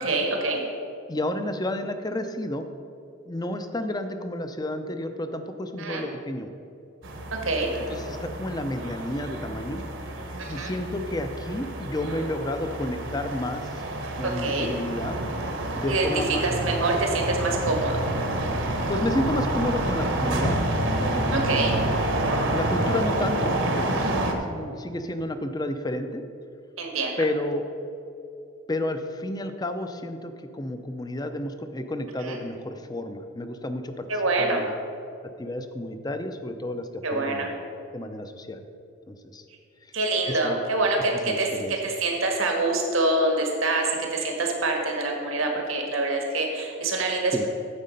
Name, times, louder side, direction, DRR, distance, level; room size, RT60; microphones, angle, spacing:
voice 1, 0.0-0.6 5.8-6.0 7.4-7.7 10.4-10.7 14.2-14.7 15.9-16.1 16.4-18.0 21.3-21.8 26.8-27.2 32.2-32.4 34.1-34.6 37.0-37.5 39.9-41.5 41.8-47.5, right 2 dB, 85° right, 1 dB, 1.6 m, -25 dB
voice 2, 1.1-2.6 3.3-6.5 7.9-9.8 10.5-13.6 14.2-15.2 15.7-16.4 18.9-20.6 21.0-21.7 22.5-26.2 27.2-27.7 28.7-34.1 34.4-34.8 35.4-37.5 37.9-38.6 39.1-39.4 40.4-40.6 41.2-41.7 47.3-47.5, left 1 dB, 20° left, 8 dB, 0.5 m, -31 dB
sound 1, 7.0-24.3, right 1 dB, 65° right, 1.2 m, -28 dB
9.6 x 7.4 x 5.2 m, 2.6 s
head